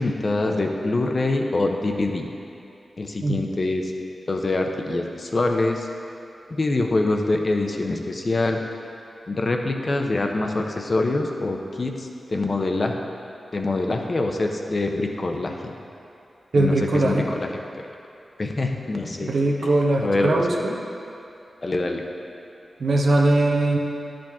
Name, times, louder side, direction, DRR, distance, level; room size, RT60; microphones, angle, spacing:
voice 1, 0.0-2.3 3.0-3.9 4.3-5.9 6.5-8.6 9.3-13.0 13.5-15.7 16.5-17.5 18.4-19.3 20.0-20.7 21.6-22.0, left 2 dB, 50° left, 3 dB, 0.7 m, -25 dB
voice 2, 16.5-17.3 19.0-20.8 22.8-23.8, right 2 dB, 75° right, -1 dB, 0.9 m, -21 dB
10.0 x 5.1 x 3.6 m, 2.7 s
cardioid pair, 40°, 0 cm